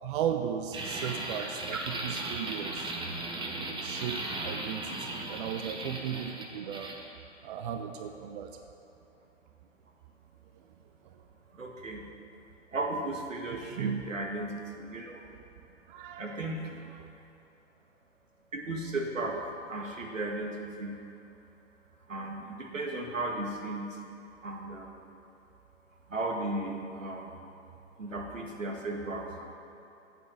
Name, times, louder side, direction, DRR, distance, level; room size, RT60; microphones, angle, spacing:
voice 1, 0.0-2.9 3.6-7.0 7.4-8.6 13.5-14.0 15.9-16.5 17.0-17.1, right 8 dB, 45° right, 6 dB, 0.7 m, -36 dB
sound 1, 0.7-7.0, right 2 dB, 10° right, 1.3 m, -37 dB
voice 2, 11.6-12.0 12.7-15.2 16.2-16.6 18.5-19.3 19.7-20.5 20.8-21.0 22.1-23.8 24.4-24.9 26.1-27.3 28.0-29.4, right 2 dB, 85° right, 1 dB, 1.9 m, -35 dB
8.6 x 8.4 x 8.4 m, 3.0 s
figure-of-eight pair, 115°, 38 cm